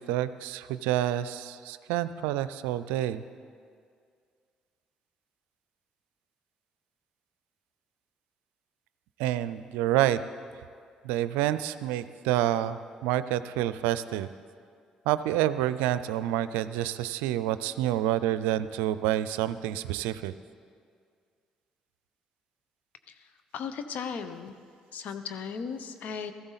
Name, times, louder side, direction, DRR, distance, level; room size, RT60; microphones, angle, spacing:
voice 1, 0.0-3.2 9.2-10.2 11.0-14.3 15.0-20.3, right 13 dB, 85° right, 14 dB, 0.4 m, -28 dB
voice 2, 23.1-24.5 24.9-26.3, left 6 dB, 65° left, 9 dB, 0.9 m, -37 dB
16.5 x 14.0 x 4.1 m, 2.2 s
hypercardioid pair, 55°, 3 cm